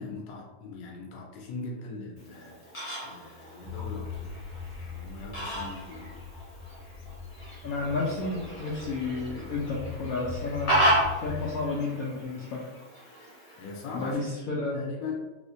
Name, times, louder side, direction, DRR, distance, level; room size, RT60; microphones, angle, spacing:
voice 1, 0.0-4.4 4.8-6.2 13.6-14.2 14.5-15.1, left 4 dB, 85° left, -1 dB, 1.3 m, -40 dB
Fowl, 2.2-14.2, right 1 dB, 35° left, 0.9 m, -33 dB
sound 1, 3.6-11.6, left 5 dB, 60° right, 0.6 m, -41 dB
voice 2, 7.6-10.9 11.2-12.6 13.9-14.8, left 3 dB, 70° left, -4 dB, 0.9 m, -31 dB
3.4 x 3.0 x 2.6 m, 1.1 s
omnidirectional pair, 1.9 m